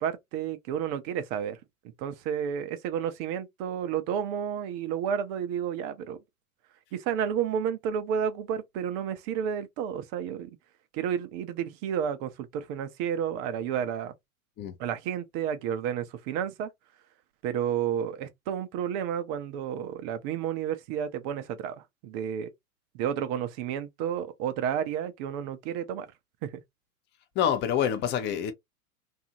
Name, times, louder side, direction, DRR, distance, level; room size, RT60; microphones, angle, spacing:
voice 1, 0.0-1.6 2.0-6.2 6.9-10.6 10.9-14.1 14.8-16.7 17.4-22.5 22.9-26.1 26.4-26.6, right 8 dB, 25° right, 0.4 m, -31 dB
voice 2, 27.4-28.5, left 9 dB, 25° left, 0.6 m, -26 dB
2.7 x 2.4 x 2.8 m
hypercardioid pair, 105°, 44 cm